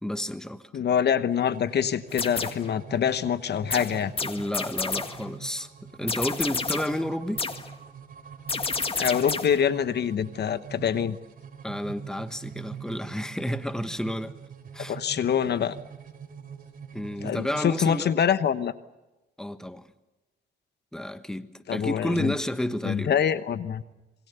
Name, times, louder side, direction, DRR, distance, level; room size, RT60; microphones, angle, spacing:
voice 1, 0.0-0.7 4.2-7.4 11.6-14.4 14.7-15.0 16.9-18.1 19.4-19.9 20.9-23.1, equal, 5° left, 1.4 m, -31 dB
voice 2, 0.7-4.1 9.0-11.2 14.9-15.8 17.2-18.7 21.7-22.3 22.8-23.8, left 8 dB, 55° left, 1.1 m, -25 dB
sound 1, 1.2-17.9, right 7 dB, 45° right, 4.7 m, -44 dB
sound 2, 2.1-2.7 3.7-5.3 6.1-7.0 7.4-7.7 8.5-9.6, left 4 dB, 30° left, 1.8 m, -30 dB
27.0 x 22.5 x 6.9 m
cardioid pair, 90°, 20 cm